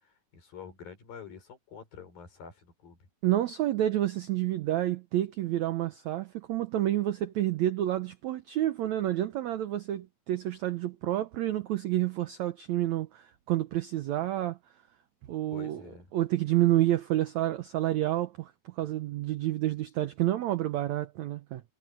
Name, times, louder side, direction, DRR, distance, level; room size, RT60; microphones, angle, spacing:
voice 1, 0.0-3.0 15.5-16.1, left 7 dB, 65° left, 6.9 m, -47 dB
voice 2, 3.2-14.6 15.3-15.8 16.1-21.6, right 14 dB, 85° right, 1.6 m, -29 dB
omnidirectional pair, 4.4 m